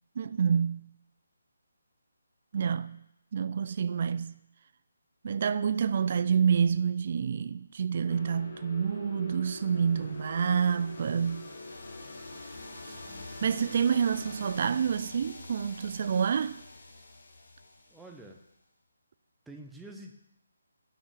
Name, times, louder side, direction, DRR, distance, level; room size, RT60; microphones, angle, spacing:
voice 1, 0.2-0.9 2.5-3.1 3.3-4.4 5.2-11.6 13.4-16.6, right 7 dB, 45° right, 0.3 m, -28 dB
sound 1, 8.1-14.8, left 2 dB, 50° left, 1.6 m, -45 dB
sound 2, 9.8-18.5, left 2 dB, 65° left, 1.5 m, -48 dB
voice 2, 12.8-13.3 17.9-18.4 19.5-20.1, right 1 dB, 5° right, 0.7 m, -48 dB
6.3 x 6.2 x 6.3 m
figure-of-eight pair, 155°, 0 cm